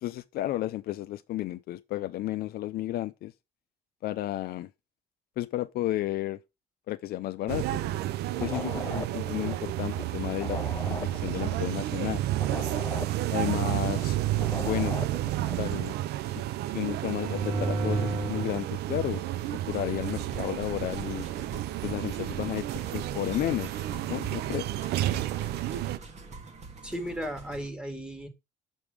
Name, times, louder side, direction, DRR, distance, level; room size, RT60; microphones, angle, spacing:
voice 1, 0.0-3.3 4.0-4.7 5.4-6.4 6.9-7.8 8.4-10.6 10.9-11.0 11.2-12.2 13.3-14.2 14.6-15.0 15.6-16.0 16.3-16.4 16.7-19.2 19.7-21.3 21.8-22.7 22.9-23.8 24.1-24.7, left 15 dB, 65° left, 0.5 m, -32 dB
sound 1, 7.5-26.0, right 14 dB, 75° right, 0.5 m, -31 dB
sound 2, 8.3-10.1 10.3-14.1 14.3-15.7, left 4 dB, 20° left, 0.5 m, -40 dB
sound 3, 17.1-18.5 19.1-27.7, right 2 dB, 45° right, 1.7 m, -38 dB
voice 2, 26.8-28.3, equal, 5° right, 1.8 m, -35 dB
6.1 x 5.4 x 4.9 m
cardioid pair, 110°, 17 cm